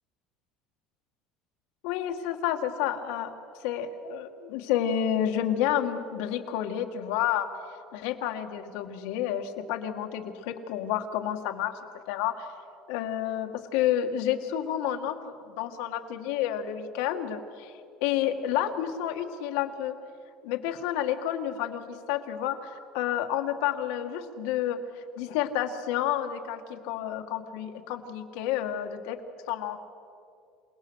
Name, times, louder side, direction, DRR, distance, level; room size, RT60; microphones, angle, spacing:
voice 1, 1.8-3.3 3.6-7.5 7.9-11.7 12.1-12.5 12.9-17.7 18.0-19.9 20.4-29.2 29.5-29.8, left 10 dB, 80° left, 6 dB, 1.8 m, -30 dB
28.0 x 19.0 x 6.4 m, 2.4 s
cardioid pair, 165°, 0 cm